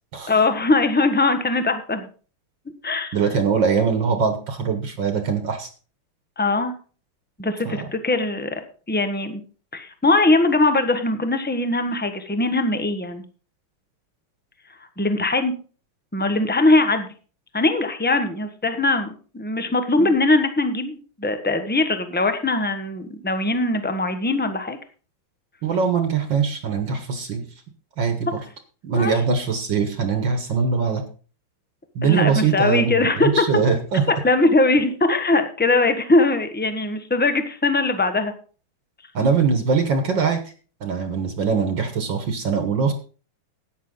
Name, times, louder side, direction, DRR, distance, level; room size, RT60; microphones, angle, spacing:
voice 1, 0.3-2.1 2.8-3.2 6.4-6.8 7.4-9.4 9.7-13.2 15.0-15.5 16.1-17.1 17.5-24.8 28.9-29.2 32.0-33.4 34.1-38.3, left 2 dB, 10° left, 8 dB, 0.7 m, -21 dB
voice 2, 3.1-5.7 7.7-7.9 20.0-20.1 25.6-27.4 28.0-28.4 28.8-31.0 32.0-34.0 39.1-40.4 40.8-42.9, right 5 dB, 60° right, 7 dB, 1.9 m, -22 dB
13.5 x 9.4 x 3.8 m, 0.38 s
omnidirectional pair, 2.4 m